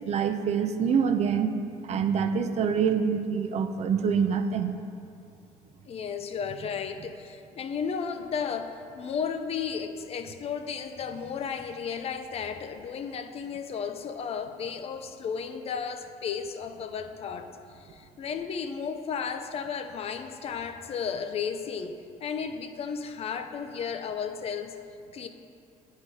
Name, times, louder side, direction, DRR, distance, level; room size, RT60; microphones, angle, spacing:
voice 1, 0.0-1.5 1.8-4.8, right 6 dB, 50° right, 7 dB, 0.5 m, -26 dB
voice 2, 5.9-17.5 17.7-24.7 25.1-25.3, left 6 dB, 45° left, 8 dB, 0.5 m, -34 dB
8.9 x 4.2 x 4.9 m, 2.5 s
cardioid pair, 100°, 14 cm